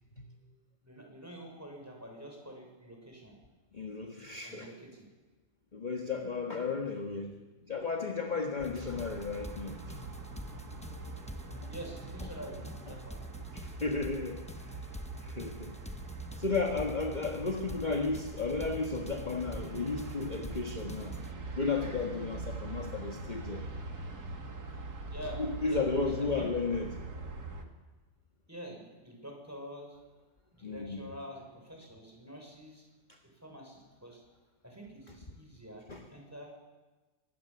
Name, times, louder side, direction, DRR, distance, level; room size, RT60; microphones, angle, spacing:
voice 1, 0.8-3.4 4.4-5.1 11.7-13.2 25.1-26.5 28.5-30.0 30.5-32.8 33.4-34.2 34.6-36.6, equal, 10° right, 0 dB, 6.4 m, -46 dB
voice 2, 3.7-4.7 5.7-7.3 7.7-10.0 11.6-11.7 13.5-14.7 15.2-15.7 16.4-21.2 21.5-23.6 25.4-27.0 30.6-31.1 33.1-33.2 35.9-36.0, left 4 dB, 30° left, 3 dB, 1.7 m, -34 dB
sound 1, 8.6-21.3, equal, 5° left, 0.8 m, -46 dB
sound 2, 8.8-27.6, right 3 dB, 80° right, 2.7 m, -43 dB
24.5 x 21.5 x 7.1 m, 1.2 s
omnidirectional pair, 1.6 m